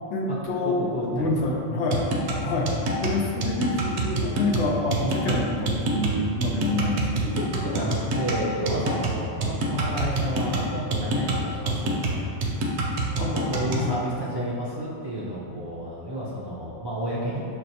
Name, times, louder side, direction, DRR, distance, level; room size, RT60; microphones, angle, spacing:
voice 1, 0.1-2.0 2.4-7.2 8.8-9.2 13.2-13.8 15.5-15.6, left 2 dB, 85° left, -1 dB, 0.9 m, -27 dB
voice 2, 0.6-1.5 2.5-2.7 7.1-12.3 13.1-17.4, equal, 35° right, -9 dB, 0.4 m, -31 dB
sound 1, 1.9-13.9, right 2 dB, 75° right, 0.8 m, -27 dB
6.3 x 2.2 x 2.7 m, 2.5 s
omnidirectional pair, 1.2 m